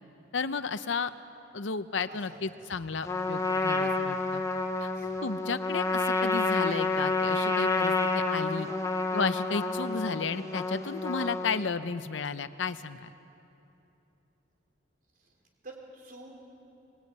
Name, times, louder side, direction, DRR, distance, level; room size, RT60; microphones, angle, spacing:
voice 1, 0.3-1.1 1.5-4.4 4.8-4.9 5.2-8.7 9.1-13.1, left 4 dB, 70° left, 12 dB, 0.8 m, -33 dB
voice 2, 2.1-2.8 4.5-4.6 5.0-5.1 15.6-16.3, right 2 dB, 45° right, 0 dB, 4.9 m, -48 dB
Trumpet, 3.0-11.7, left 3 dB, 15° left, 1.3 m, -29 dB
23.0 x 20.5 x 9.6 m, 2.9 s
head